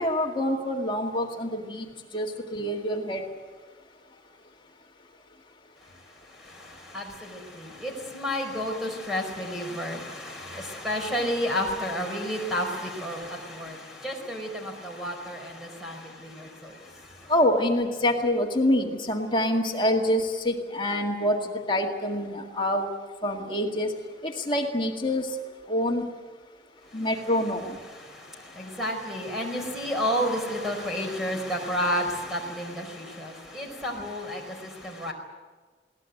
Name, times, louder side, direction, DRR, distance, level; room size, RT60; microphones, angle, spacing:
voice 1, 0.0-1.8 2.1-2.3 2.5-3.2 17.3-21.4 21.7-22.9 23.2-23.9 24.2-25.3 25.7-26.1 26.9-27.6, left 1 dB, 30° left, 1 dB, 2.0 m, -26 dB
voice 2, 6.5-16.8 27.9-35.1, equal, ahead, 1 dB, 4.6 m, -31 dB
21.5 x 18.5 x 9.3 m, 1.4 s
head